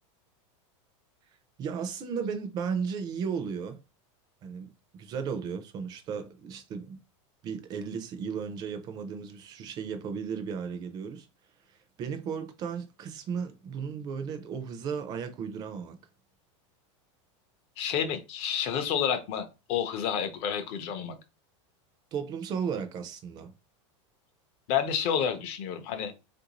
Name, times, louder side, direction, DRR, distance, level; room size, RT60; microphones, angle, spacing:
voice 1, 1.6-3.8 4.4-7.0 7.4-11.3 12.0-16.0 22.1-23.5, right 6 dB, 25° right, 0.4 m, -35 dB
voice 2, 17.8-21.2 24.7-26.1, left 8 dB, 40° left, 0.5 m, -29 dB
3.4 x 2.6 x 2.8 m
supercardioid pair, 165°, 16 cm